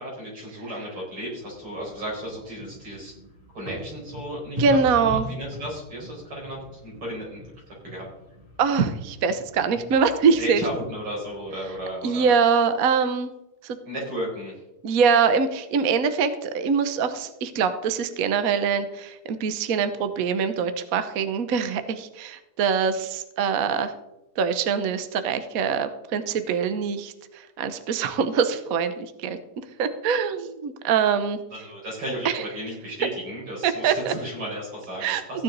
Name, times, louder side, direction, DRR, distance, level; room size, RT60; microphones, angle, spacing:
voice 1, 0.0-3.1 3.5-7.4 7.8-8.1 10.4-12.4 13.9-14.5 31.5-35.4, equal, 85° right, -4 dB, 5.9 m, -34 dB
sound 1, 1.4-11.9, equal, 10° right, 5.6 m, -40 dB
voice 2, 4.6-5.3 8.6-10.6 12.0-13.3 13.6-13.8 14.8-23.9 24.4-29.4 29.8-31.4 32.2-32.4 33.6-34.1 35.0-35.4, right 6 dB, 55° right, 10 dB, 1.0 m, -23 dB
15.0 x 9.7 x 3.9 m, 0.90 s
omnidirectional pair, 2.4 m